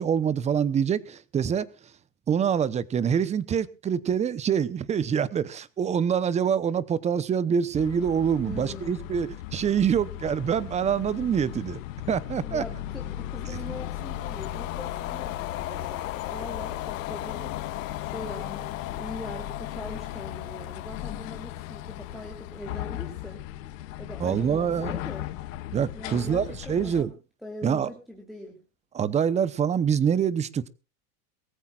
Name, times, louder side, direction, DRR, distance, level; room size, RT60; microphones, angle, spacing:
voice 1, 0.0-1.7 2.3-11.8 12.1-12.6 24.2-25.0 25.7-27.1 27.6-27.9 28.9-30.7, right 7 dB, 15° right, 0.9 m, -25 dB
sound 1, 7.8-27.0, left 13 dB, 75° left, 2.1 m, -37 dB
voice 2, 8.4-9.1 12.4-23.4 24.0-25.6 25.9-27.1 27.4-28.6, left 1 dB, ahead, 3.2 m, -42 dB
sound 2, 13.6-23.1, left 15 dB, 35° left, 1.3 m, -39 dB
23.0 x 15.0 x 2.5 m
supercardioid pair, 150°, 39 cm